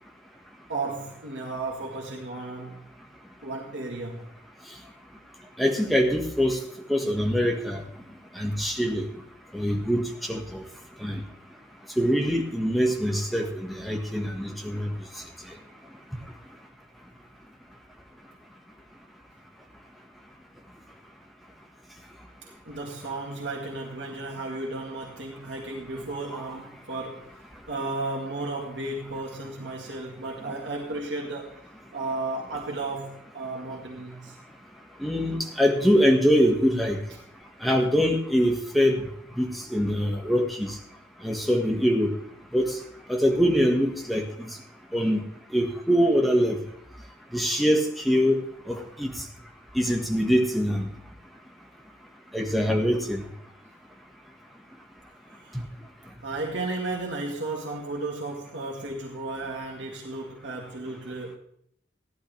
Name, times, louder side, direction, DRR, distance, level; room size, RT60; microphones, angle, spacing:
voice 1, 0.7-2.9 3.4-4.3 22.6-27.4 27.7-31.6 31.9-34.4 55.4-55.6 56.2-61.4, right 2 dB, 85° right, -2 dB, 2.0 m, -34 dB
voice 2, 5.6-6.6 6.9-7.8 8.4-9.0 9.5-10.0 10.3-10.6 11.0-11.2 12.0-14.9 35.0-37.0 37.6-39.0 39.4-40.7 41.2-42.1 42.5-42.7 43.1-44.5 44.9-45.2 45.5-46.6 47.3-49.1 49.7-50.9 52.3-53.2, equal, ahead, 1 dB, 1.6 m, -23 dB
15.0 x 11.5 x 3.4 m, 0.69 s
head